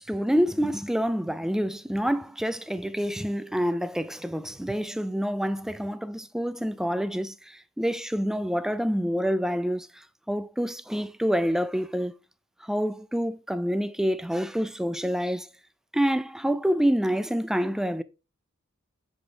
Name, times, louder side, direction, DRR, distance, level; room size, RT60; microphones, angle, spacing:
voice 1, 0.0-12.1 12.6-15.5 15.9-18.0, equal, ahead, 0.4 m, -27 dB
7.0 x 5.2 x 3.8 m
head